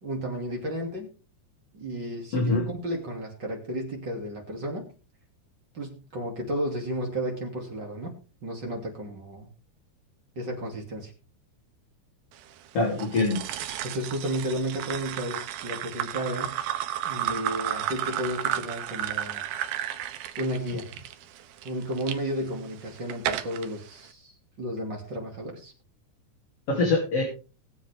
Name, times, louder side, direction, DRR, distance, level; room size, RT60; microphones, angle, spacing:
voice 1, 0.0-1.1 1.7-4.9 5.7-8.1 8.4-9.5 10.4-11.1 13.8-16.6 17.0-19.5 20.4-20.9 21.6-24.3 24.6-25.7, equal, 30° right, 0 dB, 2.7 m, -33 dB
voice 2, 2.3-2.7 12.7-13.4 20.7-20.8 26.7-27.2, left 3 dB, 40° left, -1 dB, 3.5 m, -24 dB
sound 1, 13.0-22.2 22.7-23.7, right 11 dB, 75° right, 2.6 m, -32 dB
21.0 x 7.6 x 3.4 m, 0.34 s
omnidirectional pair, 4.6 m